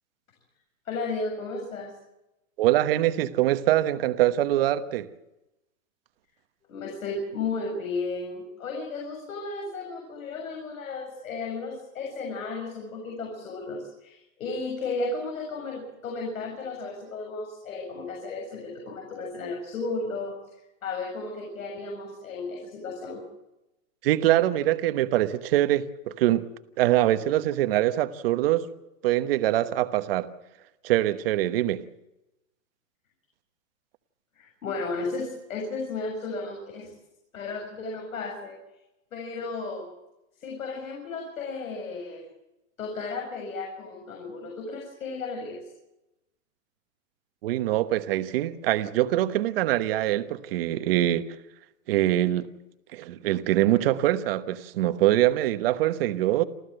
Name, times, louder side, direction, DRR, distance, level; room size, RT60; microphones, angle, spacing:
voice 1, 0.9-1.9 6.7-20.3 20.8-23.2 34.3-36.9 37.3-38.6 39.1-39.8 40.4-42.2 42.8-45.6, left 3 dB, 85° left, 7.3 m, -34 dB
voice 2, 2.6-5.1 24.0-26.5 26.8-28.7 29.0-30.3 30.8-31.8 47.4-51.2 51.9-52.5 52.9-56.4, right 14 dB, 45° right, 1.2 m, -24 dB
28.0 x 14.0 x 7.8 m
hypercardioid pair, 160°, 40 cm